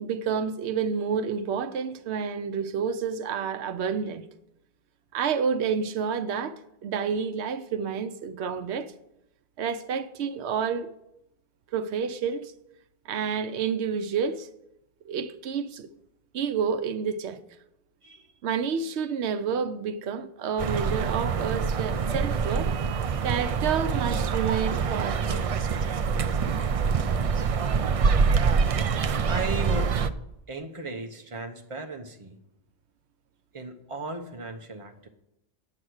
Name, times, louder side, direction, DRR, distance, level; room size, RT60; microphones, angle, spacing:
voice 1, 0.0-4.2 5.1-6.6 6.8-8.9 9.6-10.9 11.7-12.5 13.1-14.5 15.1-15.9 16.3-17.4 18.4-22.7 23.2-25.5, right 6 dB, 85° right, 0.9 m, -29 dB
sound 1, 20.6-30.1, right 5 dB, 50° right, 0.4 m, -25 dB
voice 2, 29.3-30.0 30.5-32.4 33.5-35.1, right 3 dB, 30° right, 1.1 m, -36 dB
9.7 x 7.5 x 6.3 m
omnidirectional pair, 1.1 m